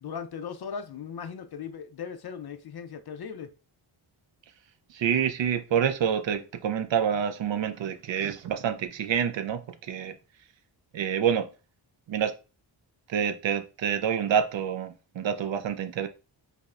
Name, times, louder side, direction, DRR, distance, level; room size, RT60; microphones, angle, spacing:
voice 1, 0.0-3.5, left 6 dB, 55° left, 0.5 m, -38 dB
voice 2, 4.9-10.1 10.9-11.5 12.1-12.3 13.1-16.1, right 8 dB, 65° right, 0.5 m, -27 dB
5.4 x 2.0 x 2.4 m
wide cardioid pair, 110°, 48 cm